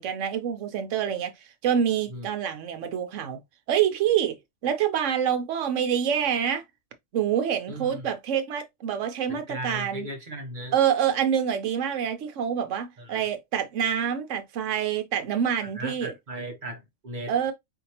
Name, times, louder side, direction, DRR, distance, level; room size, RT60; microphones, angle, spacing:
voice 1, 0.0-1.3 1.6-3.4 3.7-4.4 4.6-6.6 7.1-10.1 10.7-16.1 17.3-17.5, right 9 dB, 70° right, 1.1 m, -26 dB
voice 2, 7.7-8.1 9.3-10.7 13.0-13.3 15.6-17.4, right 1 dB, 40° right, 1.0 m, -37 dB
4.4 x 2.8 x 2.8 m
omnidirectional pair, 1.4 m